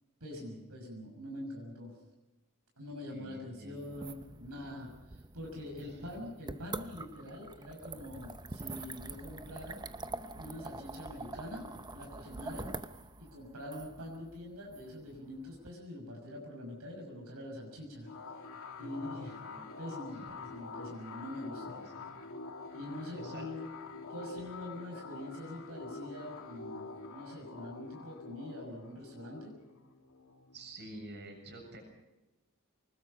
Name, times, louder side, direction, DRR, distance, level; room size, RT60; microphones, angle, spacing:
voice 1, 0.2-2.0 2.8-9.8 10.3-12.7 13.2-18.1 18.8-19.4 19.8-21.7 22.7-23.8 24.1-29.6, left 1 dB, 80° right, 1 dB, 6.3 m, -44 dB
voice 2, 3.1-3.9 5.8-6.3 18.8-19.8 20.1-20.3 21.7-22.2 23.1-23.6 30.5-31.8, right 1 dB, 50° right, 3 dB, 7.2 m, -50 dB
sound 1, 3.8-15.7, right 3 dB, 20° right, 0.8 m, -45 dB
sound 2, 18.0-31.3, left 3 dB, 70° left, 2.8 m, -46 dB
25.0 x 20.5 x 5.6 m, 1.0 s
head